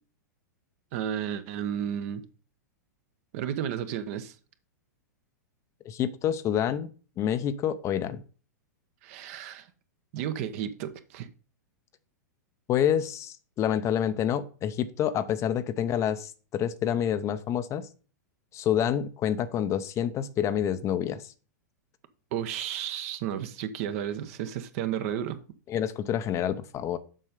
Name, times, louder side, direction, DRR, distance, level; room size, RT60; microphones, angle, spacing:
voice 1, 0.9-2.2 3.3-4.3 9.0-9.7 10.1-11.3 22.3-25.4, right 9 dB, 55° right, 1.0 m, -32 dB
voice 2, 5.8-6.9 7.2-8.2 12.7-17.9 18.5-21.2 25.7-27.0, left 9 dB, 30° left, 0.7 m, -28 dB
7.6 x 5.4 x 5.2 m
hypercardioid pair, 105°, 10 cm